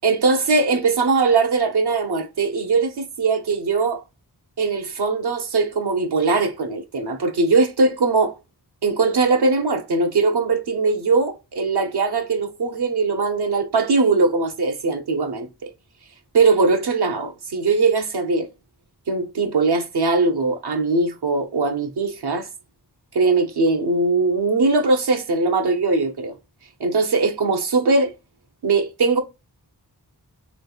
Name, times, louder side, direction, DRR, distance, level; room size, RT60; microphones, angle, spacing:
voice 1, 0.0-4.0 4.6-8.3 8.8-15.5 16.3-18.5 19.1-22.5 23.1-26.3 26.8-28.1 28.6-29.2, right 3 dB, 75° right, 0.9 m, -20 dB
3.4 x 3.3 x 2.3 m
cardioid pair, 45°, 39 cm